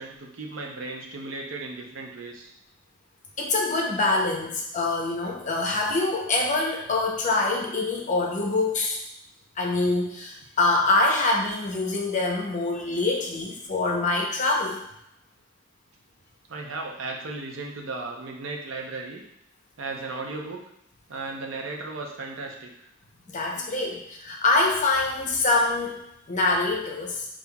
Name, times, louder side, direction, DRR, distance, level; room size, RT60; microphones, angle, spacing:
voice 1, 0.0-2.5 16.5-19.2 19.8-20.6 21.1-22.9 23.6-23.7, right 3 dB, 75° right, 1 dB, 0.6 m, -35 dB
voice 2, 3.4-9.0 9.6-14.8 23.3-26.0 26.3-27.3, left 2 dB, 40° left, 0 dB, 0.7 m, -25 dB
5.5 x 2.4 x 2.3 m, 0.79 s
head